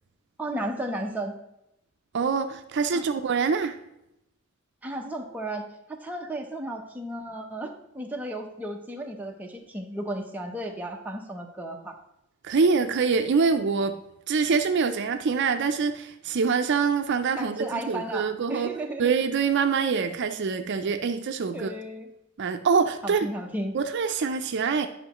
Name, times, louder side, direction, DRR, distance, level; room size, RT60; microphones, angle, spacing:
voice 1, 0.4-1.4 2.9-3.0 4.8-11.9 17.4-19.1 21.5-22.1 23.0-23.8, right 1 dB, 10° right, 1 dB, 0.8 m, -34 dB
voice 2, 2.1-3.8 12.4-14.0 14.3-18.7 19.0-21.7 22.4-23.3 23.7-24.9, right 5 dB, 55° right, 7 dB, 0.5 m, -25 dB
9.9 x 5.7 x 3.0 m, 0.83 s
head